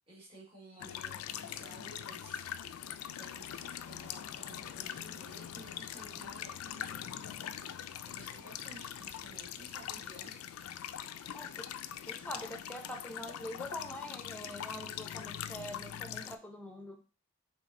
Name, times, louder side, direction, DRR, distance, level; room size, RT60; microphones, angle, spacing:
voice 1, 0.1-2.4 3.2-7.7 8.0-10.4, equal, 25° right, -7 dB, 1.6 m, -54 dB
sound 1, 0.8-16.4, left 10 dB, 90° left, 0.3 m, -42 dB
voice 2, 11.3-11.7 12.0-17.0, left 1 dB, 5° left, 3 dB, 0.6 m, -44 dB
5.0 x 3.3 x 2.6 m, 0.35 s
head